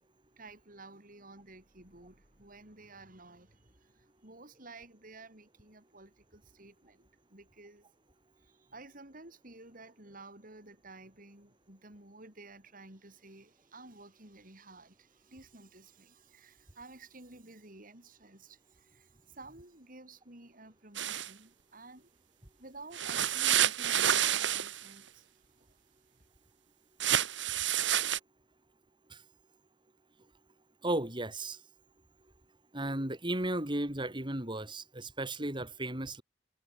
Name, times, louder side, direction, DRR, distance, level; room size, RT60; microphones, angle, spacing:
voice 1, 0.4-7.9 8.4-22.1 22.6-25.3 25.6-25.8 26.1-26.2, right 2 dB, 50° right, 5.7 m, -53 dB
sound 1, 20.9-21.3 22.9-24.9 27.0-28.2, right 10 dB, 85° right, 2.3 m, -29 dB
voice 2, 30.8-31.6 32.7-36.2, right 1 dB, 25° right, 3.2 m, -34 dB
head